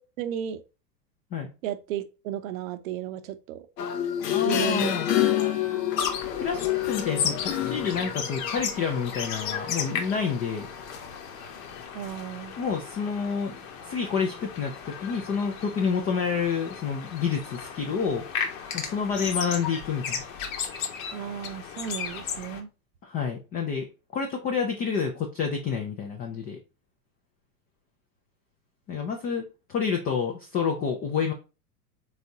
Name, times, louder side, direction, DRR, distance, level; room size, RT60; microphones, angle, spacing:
voice 1, 0.2-0.6 1.6-3.7 4.4-4.9 11.9-12.5 21.1-22.7, right 10 dB, 60° right, 0.7 m, -34 dB
sound 1, 3.8-11.3 11.8-11.9, left 12 dB, 85° left, 0.7 m, -29 dB
voice 2, 4.3-5.1 6.4-10.7 12.6-13.6 13.8-18.2 18.7-20.2 23.0-23.9 24.1-26.6 28.9-31.3, left 6 dB, 20° left, 0.4 m, -29 dB
Tui bird distant Tui birds background waves, 6.0-22.6, left 7 dB, 55° left, 1.0 m, -35 dB
4.1 x 3.5 x 2.7 m
hypercardioid pair, 105°, 47 cm